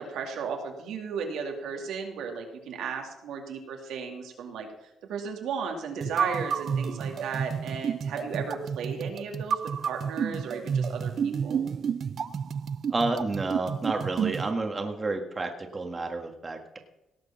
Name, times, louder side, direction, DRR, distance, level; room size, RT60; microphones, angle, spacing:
voice 1, 0.0-4.7 5.0-11.6, right 5 dB, 80° right, 2 dB, 2.4 m, -35 dB
sound 1, 6.0-14.5, right 7 dB, 55° right, 0.5 m, -30 dB
voice 2, 12.9-16.8, right 3 dB, 25° right, 4 dB, 1.6 m, -30 dB
18.0 x 6.6 x 5.8 m, 0.92 s
cardioid pair, 90°, 0 cm